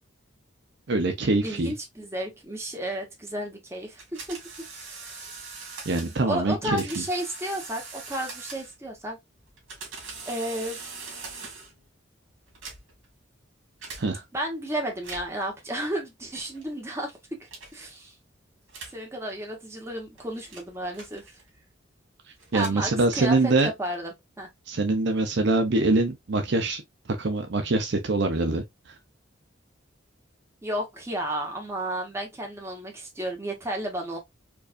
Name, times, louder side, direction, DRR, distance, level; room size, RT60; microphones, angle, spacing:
voice 1, 0.9-1.7 5.9-7.0 14.0-14.2 22.5-23.7 24.7-26.8 27.2-28.6, right 2 dB, 60° right, 0.6 m, -24 dB
voice 2, 1.4-4.4 4.8-5.3 6.0-9.2 10.3-10.8 14.3-18.1 18.9-21.4 22.5-24.5 30.6-34.2, right 1 dB, 15° right, 1.1 m, -33 dB
sound 1, 4.0-6.2 6.8-8.9 9.5-11.8 12.5-13.1 13.8-14.0 14.9-15.5 16.3-16.7 17.5-17.9 18.7-19.0 19.8-21.6 22.3-23.4, right 4 dB, 80° right, 2.1 m, -42 dB
4.6 x 2.5 x 2.5 m
head